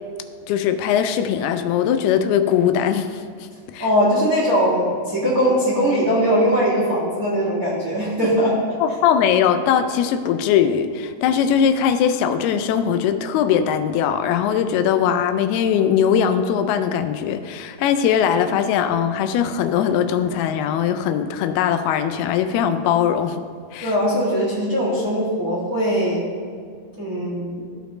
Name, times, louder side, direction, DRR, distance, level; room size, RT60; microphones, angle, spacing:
voice 1, 0.5-3.5 3.7-3.9 8.8-23.4 23.7-23.9, left 8 dB, 85° left, 9 dB, 2.5 m, -20 dB
voice 2, 3.8-8.6 23.8-26.2 27.0-27.6, equal, 35° right, -8 dB, 1.6 m, -20 dB
15.0 x 5.1 x 3.1 m, 2.1 s
omnidirectional pair, 4.5 m